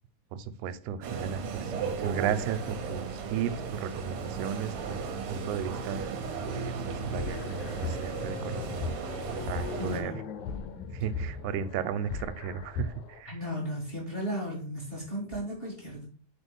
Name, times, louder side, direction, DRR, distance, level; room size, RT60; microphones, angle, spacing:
voice 1, 0.3-5.0 5.3-6.1 6.4-8.8 9.5-10.1 10.9-13.3, right 8 dB, 85° right, 13 dB, 2.0 m, -35 dB
sound 1, 1.0-10.0, right 5 dB, 70° right, 1.3 m, -35 dB
sound 2, 7.1-13.2, left 4 dB, 80° left, 2.0 m, -38 dB
voice 2, 9.8-10.2 13.3-16.1, equal, 20° left, -4 dB, 1.9 m, -35 dB
4.6 x 4.3 x 5.3 m, 0.42 s
omnidirectional pair, 3.4 m